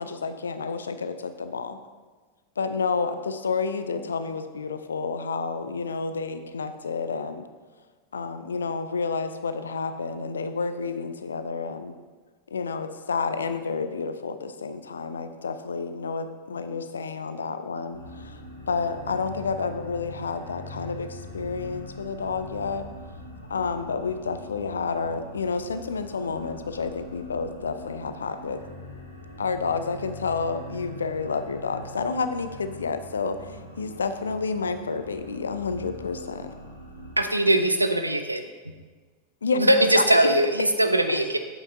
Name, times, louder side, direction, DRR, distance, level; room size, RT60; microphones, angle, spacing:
voice 1, 0.0-1.8 2.6-7.5 8.1-12.0 12.5-18.4 18.7-22.8 23.5-28.6 29.4-36.5 39.4-40.3 41.1-41.2, left 4 dB, 70° left, 10 dB, 0.5 m, -30 dB
sound 1, 17.9-37.1, left 1 dB, 85° left, 1.2 m, -43 dB
voice 2, 37.2-38.4 39.6-41.4, right 1 dB, 85° right, 7 dB, 0.5 m, -21 dB
8.3 x 8.3 x 2.7 m, 1.4 s
figure-of-eight pair, 90°, 0 cm